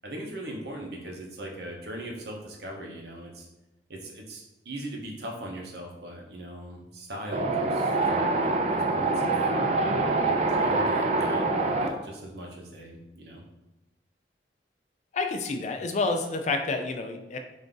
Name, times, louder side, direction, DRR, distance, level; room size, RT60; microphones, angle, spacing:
voice 1, 0.0-3.5 3.9-9.3 10.2-13.4, right 1 dB, 60° right, 0 dB, 0.8 m, -39 dB
Wind, 7.3-11.9, right 3 dB, 40° right, 0.4 m, -25 dB
voice 2, 15.1-17.4, left 3 dB, 40° left, 6 dB, 0.3 m, -29 dB
3.5 x 2.6 x 3.8 m, 0.98 s
head